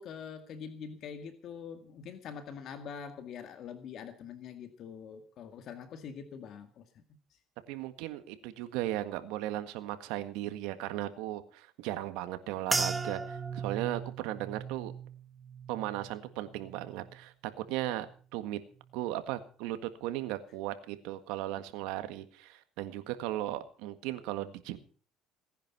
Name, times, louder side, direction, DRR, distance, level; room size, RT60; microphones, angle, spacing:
voice 1, 0.0-7.0 7.3-7.4, left 7 dB, 60° left, 8 dB, 2.0 m, -44 dB
voice 2, 7.7-14.9 15.7-18.1 18.3-18.6 18.9-24.8, right 14 dB, 85° right, 10 dB, 1.7 m, -36 dB
sound 1, 12.7-17.2 17.6-18.2 18.8-19.0, right 4 dB, 15° right, 1.5 m, -38 dB
18.5 x 10.5 x 5.9 m, 0.41 s
cardioid pair, 105°, 0 cm